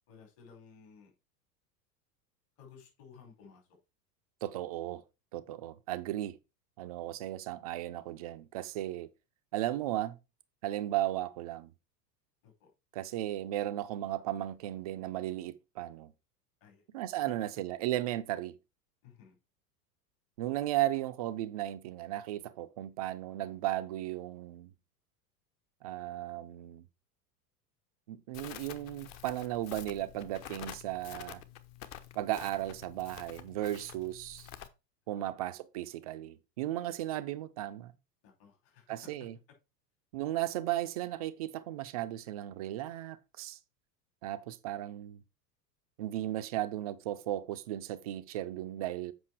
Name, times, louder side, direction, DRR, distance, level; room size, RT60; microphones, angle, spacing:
voice 1, 0.1-1.1 2.6-3.8 12.4-12.7 16.6-16.8 17.1-17.5 19.0-19.4 35.2-35.3 38.2-39.3, left 6 dB, 50° left, 5.0 m, -56 dB
voice 2, 4.4-5.0 5.3-6.4 6.8-9.1 9.5-10.2 10.6-11.7 12.9-16.1 16.9-18.5 20.4-24.7 25.8-26.8 28.1-31.4 32.2-34.5 35.1-37.9 38.9-39.3 40.1-43.6 44.2-45.2 46.0-49.1, right 14 dB, 25° right, 0.3 m, -35 dB
Crackle, 28.3-34.7, left 10 dB, 35° left, 1.0 m, -48 dB
7.8 x 5.5 x 4.6 m
figure-of-eight pair, 85°, 49 cm